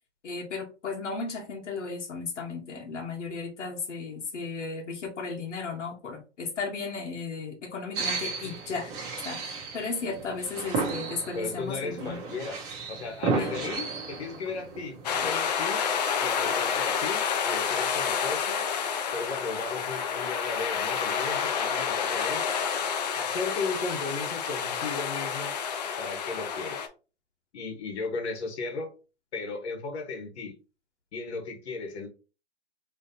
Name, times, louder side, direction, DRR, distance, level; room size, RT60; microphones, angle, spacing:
voice 1, 0.2-8.9 9.2-12.2 13.4-13.6, left 4 dB, 85° left, 1.3 m, -35 dB
sound 1, 7.9-15.3, right 4 dB, 20° right, 0.9 m, -34 dB
voice 2, 11.3-12.6 12.9-15.8 16.2-18.6 19.1-22.5 23.1-25.5 26.0-26.8 27.5-28.9 29.3-30.5 31.1-32.1, left 4 dB, 65° left, 1.4 m, -35 dB
sound 2, 15.0-26.9, left 7 dB, 35° left, 0.5 m, -29 dB
3.8 x 3.2 x 2.8 m
hypercardioid pair, 150°, 35 cm